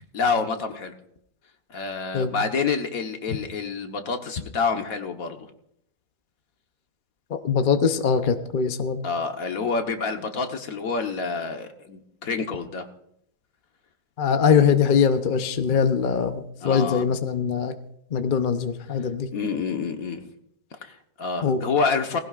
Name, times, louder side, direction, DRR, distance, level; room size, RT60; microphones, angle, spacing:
voice 1, 0.1-0.9 1.7-5.4 9.0-12.9 16.6-17.0 19.3-20.3 20.8-22.2, left 5 dB, 65° left, 5 dB, 1.7 m, -27 dB
voice 2, 7.3-9.1 14.2-17.7 18.1-19.3 21.4-21.6, left 6 dB, 40° left, 8 dB, 0.8 m, -22 dB
19.0 x 16.5 x 2.5 m, 0.72 s
omnidirectional pair, 1.6 m